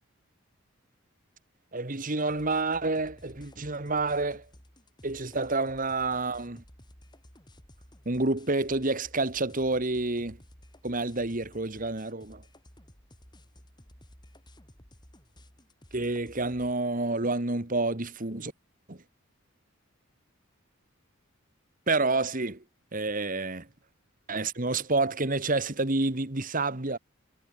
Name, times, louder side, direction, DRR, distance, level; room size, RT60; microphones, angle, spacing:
voice 1, 1.7-4.4 5.0-6.6 8.1-10.4 10.8-12.4 15.9-18.5 18.9-19.0 21.9-22.6 22.9-23.7 24.3-27.0, right 3 dB, 40° right, 1.8 m, -29 dB
sound 1, 2.3-16.7, equal, 20° left, 6.6 m, -55 dB
head